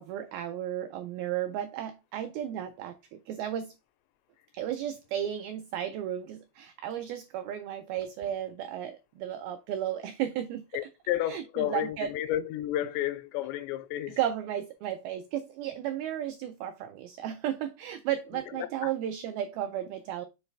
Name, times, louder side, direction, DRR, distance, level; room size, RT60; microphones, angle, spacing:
voice 1, 0.0-3.7 4.5-10.8 11.3-12.1 14.2-20.3, right 11 dB, 85° right, 2.1 m, -34 dB
voice 2, 10.7-14.2 18.6-18.9, left 12 dB, 90° left, 2.8 m, -32 dB
6.9 x 4.0 x 4.4 m
omnidirectional pair, 5.0 m